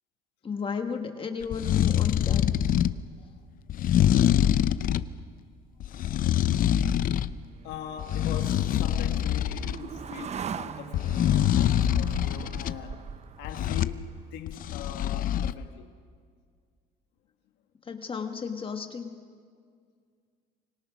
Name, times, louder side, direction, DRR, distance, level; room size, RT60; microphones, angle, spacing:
voice 1, 0.4-2.5 17.8-19.1, left 6 dB, 30° left, 1.4 m, -33 dB
sound 1, 1.4-3.0 3.7-5.1 5.8-7.3 7.7-9.8 10.9-12.8 13.4-14.0 14.5-15.5, left 11 dB, 55° left, 0.7 m, -25 dB
sound 2, 7.0-14.4, right 7 dB, 40° right, 0.8 m, -42 dB
voice 2, 7.6-15.9, left 10 dB, 90° left, 1.3 m, -42 dB
25.5 x 25.5 x 6.2 m
cardioid pair, 110°, 17 cm